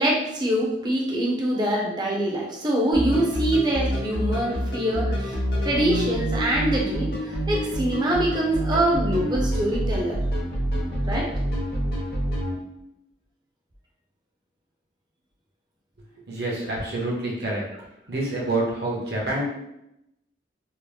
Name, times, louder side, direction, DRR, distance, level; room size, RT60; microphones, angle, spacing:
voice 1, 0.0-5.4 5.6-10.2 11.1-11.3, right 1 dB, 25° right, -1 dB, 0.5 m, -24 dB
sound 1, 2.9-12.5, equal, 60° left, 0.8 m, -27 dB
voice 2, 16.2-17.6 18.1-19.4, right 2 dB, 65° right, -3 dB, 0.8 m, -27 dB
2.8 x 2.0 x 3.2 m, 0.83 s
head